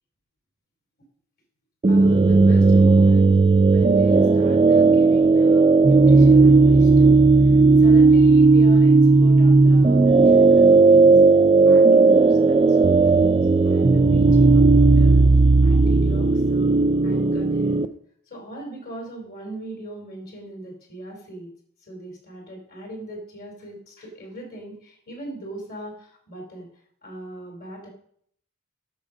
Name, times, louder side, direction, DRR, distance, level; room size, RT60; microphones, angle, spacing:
sound 1, 1.8-17.9, right 3 dB, 25° right, 0.3 m, -15 dB
voice 1, 1.9-3.3 3.6-15.2 15.6-16.7 17.0-17.9 18.3-21.5 21.8-26.7 27.0-27.9, right 1 dB, 45° left, 1 dB, 3.5 m, -39 dB
8.4 x 7.3 x 5.1 m, 0.63 s
head